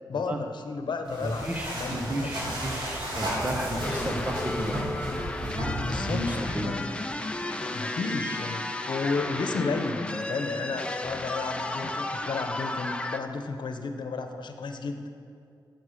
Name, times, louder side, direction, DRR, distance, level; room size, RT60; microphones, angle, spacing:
voice 1, 0.1-2.5 5.8-6.9 7.6-15.0, left 4 dB, 75° left, 7 dB, 0.9 m, -33 dB
sound 1, 1.0-6.6, equal, 90° right, 3.4 m, -33 dB
voice 2, 1.2-4.9 6.1-6.7, right 1 dB, 20° right, 3 dB, 0.9 m, -32 dB
sound 2, 3.8-13.2, left 2 dB, 15° left, 0.5 m, -33 dB
14.5 x 6.6 x 6.5 m, 2.5 s
wide cardioid pair, 175°, 8 cm